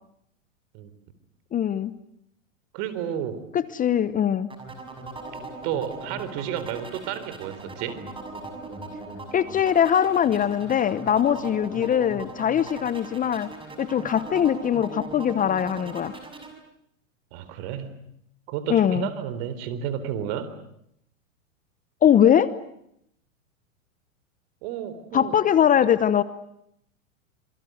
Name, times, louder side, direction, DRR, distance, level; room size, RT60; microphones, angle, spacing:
voice 1, 1.5-1.9 3.5-4.5 9.3-13.5 13.8-16.2 18.7-19.1 22.0-22.5 25.1-26.2, left 9 dB, 20° left, 16 dB, 1.0 m, -21 dB
voice 2, 2.7-3.4 5.6-8.0 17.3-18.0 18.5-20.5 24.6-25.4, right 9 dB, 50° right, 13 dB, 4.2 m, -31 dB
sound 1, 4.5-16.5, right 3 dB, 15° right, 6.5 m, -39 dB
27.0 x 25.0 x 8.0 m, 0.74 s
hypercardioid pair, 115°, 39 cm